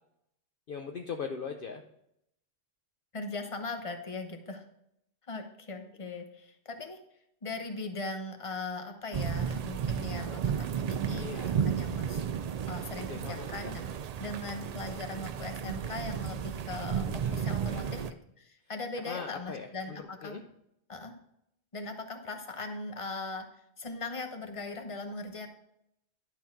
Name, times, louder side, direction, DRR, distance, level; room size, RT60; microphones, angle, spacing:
voice 1, 0.7-1.8 11.2-11.6 13.1-13.5 17.1-18.1 19.1-20.4, left 5 dB, 55° left, 4 dB, 0.8 m, -41 dB
voice 2, 3.1-4.6 5.3-7.0 7.4-11.4 11.6-13.8 14.2-18.0 18.4-20.4 20.9-21.1 21.7-23.5 23.8-25.5, left 3 dB, 30° left, 6 dB, 1.0 m, -39 dB
sound 1, 9.1-18.1, right 7 dB, 65° right, 0.4 m, -33 dB
11.5 x 4.1 x 5.9 m, 0.77 s
omnidirectional pair, 1.2 m